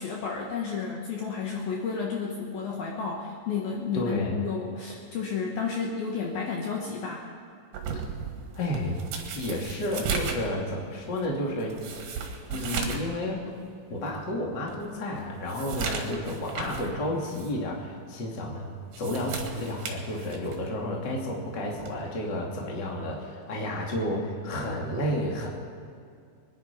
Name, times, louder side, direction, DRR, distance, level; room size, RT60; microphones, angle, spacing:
voice 1, 0.0-7.3, left 5 dB, 65° left, -1 dB, 2.7 m, -32 dB
voice 2, 3.9-4.4 7.9-8.0 8.5-9.0 9.3-11.9 12.5-13.4 13.9-18.7 19.0-25.5, left 1 dB, 30° left, -1 dB, 2.2 m, -31 dB
sound 1, 7.7-13.1 13.5-13.6 14.1-14.2 14.7-16.9 17.3-17.5 18.7-20.7 21.8-22.0, right 5 dB, 55° right, 2.6 m, -35 dB
24.5 x 10.5 x 5.3 m, 2.3 s
omnidirectional pair, 5.3 m